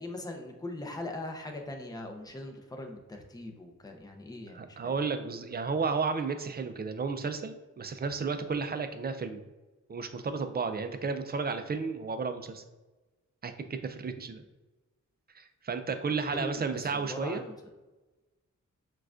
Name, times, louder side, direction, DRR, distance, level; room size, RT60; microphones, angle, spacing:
voice 1, 0.0-4.9 16.3-17.5, left 2 dB, 10° left, 3 dB, 0.6 m, -40 dB
voice 2, 4.5-9.4 9.9-12.6 13.4-14.4 15.3-17.4, right 4 dB, 30° right, 8 dB, 0.4 m, -33 dB
5.9 x 2.3 x 2.4 m, 1.1 s
cardioid pair, 85°, 31 cm